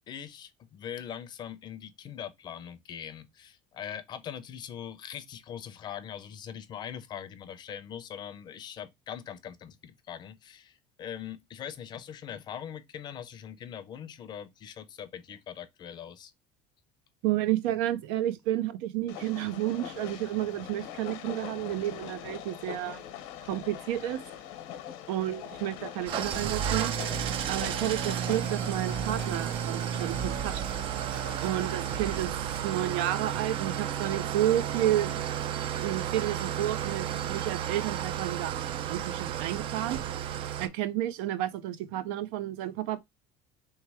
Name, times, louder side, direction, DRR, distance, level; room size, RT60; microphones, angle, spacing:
voice 1, 0.1-16.3, left 9 dB, 35° left, 0.6 m, -42 dB
voice 2, 17.2-23.0 23.5-24.2 25.1-26.9 27.5-30.6 31.4-32.3 32.6-35.1 35.8-38.6 38.9-40.0 40.6-43.0, right 13 dB, 80° right, 0.6 m, -31 dB
Train, 19.1-32.2, left 10 dB, 80° left, 0.9 m, -43 dB
Engine starting / Idling, 26.1-40.7, right 10 dB, 40° right, 0.4 m, -32 dB
sound 1, 27.1-28.5 28.9-31.5 31.9-32.9, right 5 dB, 60° right, 1.3 m, -42 dB
3.3 x 3.1 x 4.7 m
cardioid pair, 155°, 14 cm